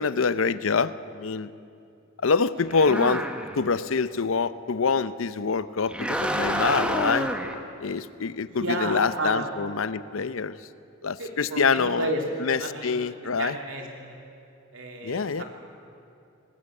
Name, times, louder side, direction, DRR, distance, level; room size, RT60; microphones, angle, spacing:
voice 1, 0.0-1.5 2.2-3.2 3.6-7.3 7.8-10.6 11.0-12.1 12.4-13.6 15.0-15.4, left 5 dB, 75° left, 15 dB, 0.6 m, -25 dB
sound 1, 2.7-3.7 5.9-7.6, equal, 5° right, 1.2 m, -28 dB
voice 2, 8.5-9.4 11.2-12.2 12.6-12.9 13.4-14.1 14.7-15.4, right 1 dB, 70° right, 1 dB, 3.2 m, -32 dB
20.5 x 18.0 x 8.3 m, 2.6 s
head